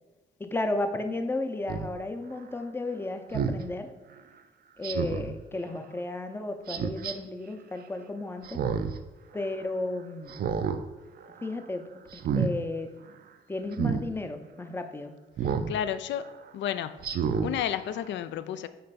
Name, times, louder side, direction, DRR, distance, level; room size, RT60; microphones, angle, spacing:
voice 1, 0.4-3.9 4.8-8.6 9.3-10.4 11.4-12.9 13.5-15.1, left 2 dB, 10° left, 0.5 m, -33 dB
Speech synthesizer, 1.7-1.9 3.3-3.6 4.8-5.3 6.7-7.1 8.4-9.0 9.4-9.5 10.3-10.8 11.2-11.5 12.1-12.5 13.7-14.0 15.4-15.7 16.2-16.3 17.0-17.5 18.0-18.1, right 6 dB, 50° right, 0.4 m, -29 dB
voice 2, 15.4-16.3 16.5-17.0 17.4-18.7, left 10 dB, 65° left, 0.4 m, -31 dB
5.4 x 4.4 x 4.1 m
cardioid pair, 90°, 20 cm